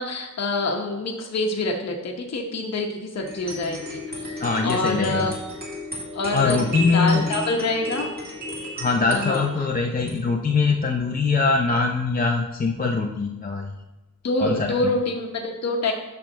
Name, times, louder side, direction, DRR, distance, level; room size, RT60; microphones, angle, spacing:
voice 1, 0.0-4.0 4.6-5.3 6.1-8.1 9.1-9.7 14.2-15.9, left 2 dB, 50° left, 1 dB, 0.9 m, -26 dB
sound 1, 3.2-11.5, left 1 dB, 30° right, 2.2 m, -35 dB
voice 2, 4.4-5.3 6.3-7.3 8.8-13.7 14.4-14.9, left 4 dB, 25° left, 2 dB, 0.5 m, -22 dB
8.8 x 3.4 x 6.4 m, 1.1 s
wide cardioid pair, 170°, 33 cm